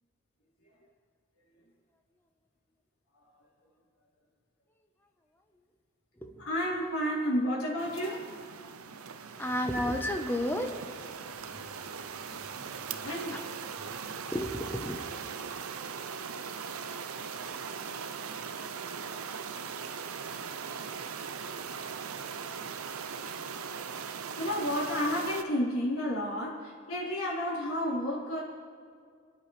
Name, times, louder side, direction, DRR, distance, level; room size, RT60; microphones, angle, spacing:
voice 1, 6.4-8.3 9.7-9.9 13.0-13.4 24.4-28.4, equal, 85° left, -6 dB, 4.2 m, -31 dB
sound 1, 7.8-25.4, right 6 dB, 80° right, 0.7 m, -40 dB
voice 2, 9.4-10.7 11.4-13.4 13.7-15.0, equal, 10° left, 4 dB, 1.0 m, -34 dB
29.5 x 10.5 x 3.3 m, 2.2 s
head